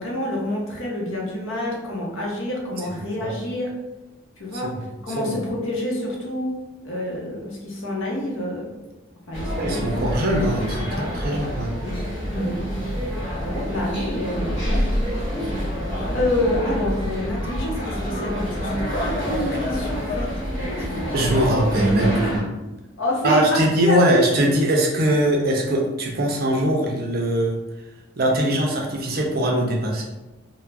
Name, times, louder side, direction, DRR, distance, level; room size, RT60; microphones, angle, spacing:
voice 1, 0.0-3.7 4.4-4.7 5.0-6.5 6.8-8.7 9.3-9.9 10.8-11.0 11.8-12.0 12.3-12.6 13.4-14.8 16.1-20.3 21.4-21.5 22.0-22.6 23.0-24.2, left 1 dB, 70° left, -2 dB, 0.7 m, -27 dB
voice 2, 3.0-3.3 4.6-4.8 5.2-5.3 9.6-11.7 21.1-22.5 23.2-27.6 28.2-30.0, right 1 dB, 45° right, 0 dB, 0.4 m, -21 dB
sound 1, 9.3-22.4, equal, 35° left, 1.0 m, -27 dB
2.3 x 2.0 x 3.3 m, 1.0 s
head